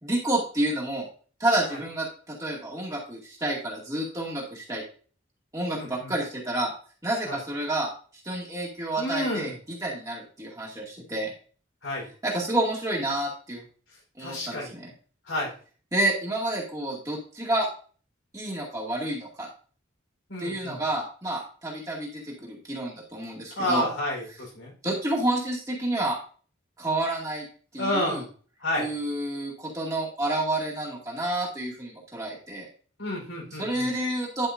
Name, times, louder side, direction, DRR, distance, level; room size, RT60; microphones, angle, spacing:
voice 1, 0.0-1.1 1.4-4.8 5.5-6.7 7.0-7.9 8.2-9.5 9.8-11.3 12.2-13.6 14.2-14.9 15.9-17.7 18.3-19.5 20.4-23.9 24.8-26.2 26.8-27.5 27.7-28.2 28.8-32.7 33.6-34.5, right 1 dB, 15° right, -4 dB, 2.3 m, -29 dB
voice 2, 5.7-6.1 7.3-7.4 9.0-9.6 11.8-12.1 14.2-14.7 15.3-15.5 20.3-20.8 23.5-24.7 27.8-28.3 28.6-28.9 33.0-33.9, left 1 dB, 85° left, -3 dB, 4.5 m, -30 dB
11.0 x 5.6 x 2.7 m, 0.41 s
head